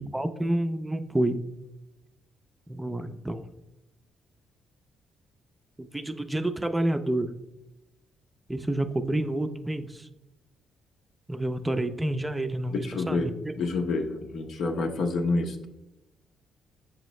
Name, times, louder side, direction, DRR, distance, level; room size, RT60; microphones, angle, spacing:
voice 1, 0.1-1.4 2.7-3.4 5.8-7.3 8.5-10.1 11.3-13.5, right 1 dB, 10° right, 8 dB, 0.4 m, -29 dB
voice 2, 12.7-13.3 13.6-15.7, left 3 dB, 75° left, 4 dB, 0.7 m, -28 dB
6.4 x 4.8 x 3.1 m, 0.94 s
cardioid pair, 90°, 0 cm